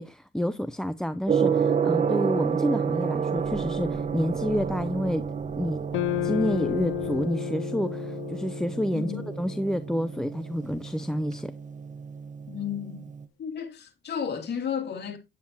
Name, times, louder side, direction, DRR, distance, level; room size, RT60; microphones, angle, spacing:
voice 1, 0.0-5.3 5.6-5.8 6.2-9.1 9.4-11.5, equal, 5° left, 0.6 m, -29 dB
Gong, 1.3-13.2, right 7 dB, 40° right, 1.0 m, -30 dB
sound 1, 3.3-8.1, right 5 dB, 70° right, 2.1 m, -43 dB
sound 2, 5.9-10.3, left 18 dB, 75° left, 0.4 m, -33 dB
voice 2, 8.9-9.2 12.5-13.0 13.4-15.2, left 7 dB, 55° left, 2.7 m, -32 dB
9.4 x 9.2 x 2.9 m
cardioid pair, 90°, 20 cm